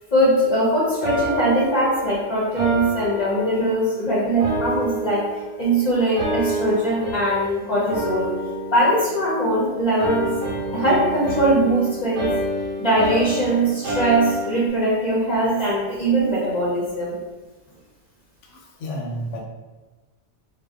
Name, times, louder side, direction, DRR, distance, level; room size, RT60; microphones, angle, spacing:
voice 1, 0.1-5.2 5.6-8.3 8.7-10.3 10.7-12.3 12.8-17.2, right 1 dB, 45° left, -8 dB, 0.6 m, -21 dB
sound 1, 1.0-4.0 4.4-5.7 6.2-7.6 7.9-9.6 10.0-14.7, right 1 dB, 85° right, 1.0 m, -28 dB
voice 2, 18.4-19.4, equal, 80° left, -1 dB, 0.9 m, -31 dB
2.6 x 2.1 x 2.3 m, 1.2 s
omnidirectional pair, 1.2 m